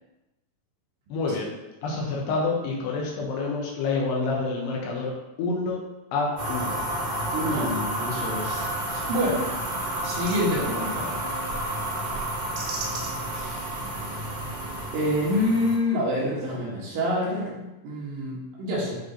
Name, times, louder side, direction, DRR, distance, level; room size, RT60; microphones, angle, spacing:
voice 1, 1.1-1.5 1.8-5.1 5.4-5.8 6.1-6.8, left 3 dB, 75° left, -2 dB, 2.9 m, -27 dB
sound 1, 6.4-15.8, right 1 dB, 40° right, 2.7 m, -31 dB
voice 2, 7.3-9.5 10.0-11.1 13.3-13.8 14.9-19.0, left 1 dB, 70° right, -5 dB, 3.5 m, -27 dB
sound 2, 8.4-14.9, right 5 dB, 85° right, 3.4 m, -40 dB
9.7 x 3.4 x 3.8 m, 1.0 s
omnidirectional pair, 5.2 m